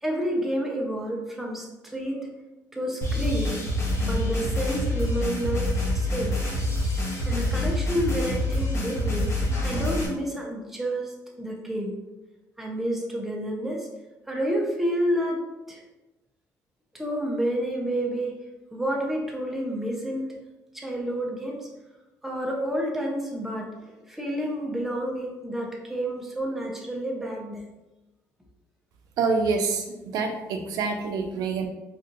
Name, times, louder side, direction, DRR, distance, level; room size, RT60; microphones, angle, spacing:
voice 1, 0.0-2.3 2.7-3.6 4.0-5.7 5.9-6.4 7.3-9.3 9.6-11.9 12.6-13.9 14.3-15.8 16.9-18.3 18.7-20.3 20.7-21.7 22.2-27.6, equal, 5° right, -1 dB, 0.7 m, -29 dB
sound 1, 3.0-10.1, left 1 dB, 45° left, 1.0 m, -26 dB
voice 2, 29.2-31.7, right 4 dB, 75° right, 4 dB, 0.4 m, -26 dB
4.3 x 2.5 x 2.5 m, 1.1 s
cardioid pair, 110°, 7 cm